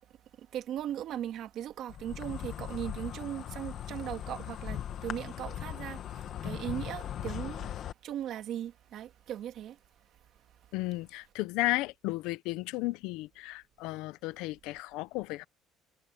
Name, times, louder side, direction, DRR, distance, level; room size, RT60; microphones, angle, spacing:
voice 1, 0.4-7.8 8.0-9.8, right 11 dB, 50° right, 2.1 m, -38 dB
Insect, 1.9-7.9, left 10 dB, 40° left, 1.4 m, -39 dB
voice 2, 10.7-15.4, left 20 dB, 80° left, 0.7 m, -34 dB
cardioid pair, 170°, 0 cm